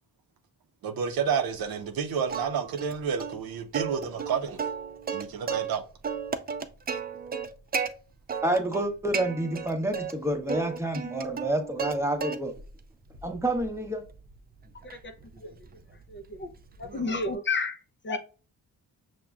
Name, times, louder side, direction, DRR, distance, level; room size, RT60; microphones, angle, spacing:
voice 1, 0.8-4.7 5.1-5.8, right 6 dB, 65° right, 0.6 m, -30 dB
Plucked string instrument, 2.3-2.9 3.2-3.3 3.7-5.8 6.0-7.9 8.3-8.8 9.1-10.1 10.5-12.0 12.2-12.7 13.1-17.4, right 6 dB, 25° right, 0.4 m, -34 dB
voice 2, 8.4-12.5 13.2-14.0, right 1 dB, 5° right, 0.8 m, -28 dB
voice 3, 16.1-16.5 16.8-17.8 18.0-18.2, left 3 dB, 30° left, 0.5 m, -30 dB
5.7 x 2.1 x 2.3 m
supercardioid pair, 50°, 38 cm